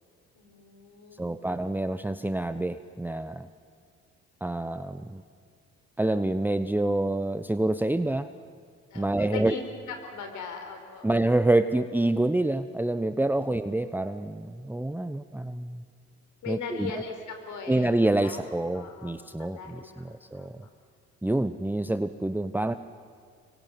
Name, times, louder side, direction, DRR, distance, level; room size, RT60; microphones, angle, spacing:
voice 1, 0.3-1.4 8.9-9.6 9.9-11.1 13.4-13.5 16.4-18.4 18.7-20.5, left 5 dB, 70° left, 5 dB, 4.6 m, -40 dB
voice 2, 1.2-3.5 4.4-5.2 6.0-8.3 8.9-9.6 11.0-15.8 16.5-17.0 17.7-20.6 21.2-22.7, right 1 dB, 5° right, 11 dB, 0.9 m, -27 dB
25.5 x 23.5 x 9.3 m, 2.1 s
hypercardioid pair, 55°, 32 cm